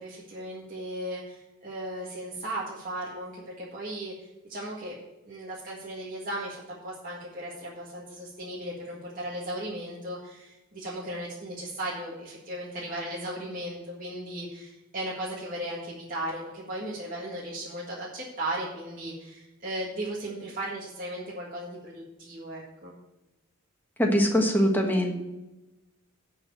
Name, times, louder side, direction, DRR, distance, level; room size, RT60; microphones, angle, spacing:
voice 1, 0.0-4.1 4.4-5.0 5.3-22.9, right 1 dB, 40° right, -6 dB, 1.8 m, -36 dB
voice 2, 24.0-25.1, equal, 10° left, 1 dB, 1.4 m, -22 dB
10.5 x 4.6 x 8.0 m, 1.0 s
head